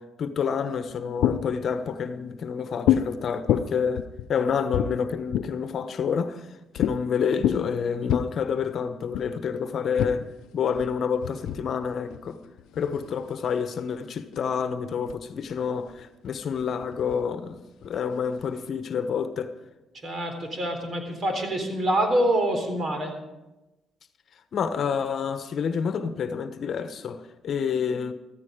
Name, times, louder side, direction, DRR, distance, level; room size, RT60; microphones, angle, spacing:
voice 1, 0.0-4.0 4.3-6.5 6.7-10.3 10.5-12.4 12.8-19.5 24.5-28.1, left 6 dB, 60° left, 1.1 m, -28 dB
sound 1, 0.8-1.7 2.9-3.1 3.5-5.7 6.8-7.0 7.3-8.2 9.1-9.3 10.0-13.4 14.1-14.6 15.1-15.2 15.4-17.2 17.8-18.7, left 11 dB, 90° left, 0.6 m, -28 dB
voice 2, 20.0-23.1, right 1 dB, 45° right, 3.8 m, -26 dB
14.5 x 14.0 x 5.1 m
cardioid pair, 90°, 0 cm